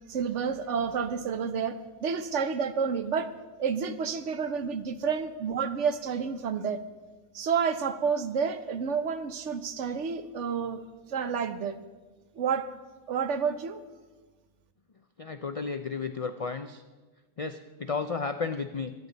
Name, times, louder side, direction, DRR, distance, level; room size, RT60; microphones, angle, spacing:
voice 1, 0.1-3.3 3.6-6.8 7.3-10.8 11.1-11.8 12.4-12.7 13.1-13.8, right 6 dB, 65° right, 10 dB, 1.1 m, -29 dB
voice 2, 15.2-16.8 17.4-18.9, left 4 dB, 65° left, 8 dB, 0.3 m, -33 dB
24.0 x 9.4 x 4.0 m, 1.3 s
omnidirectional pair, 1.3 m